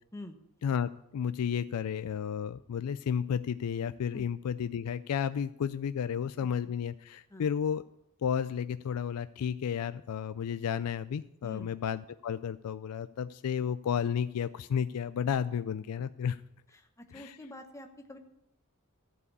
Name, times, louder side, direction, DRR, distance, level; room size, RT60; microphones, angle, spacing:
voice 1, 0.6-7.8 8.2-16.4 17.1-17.4, left 7 dB, 85° left, 14 dB, 0.4 m, -32 dB
voice 2, 16.7-18.2, left 1 dB, 15° left, 4 dB, 0.9 m, -46 dB
14.0 x 4.9 x 8.1 m, 0.81 s
head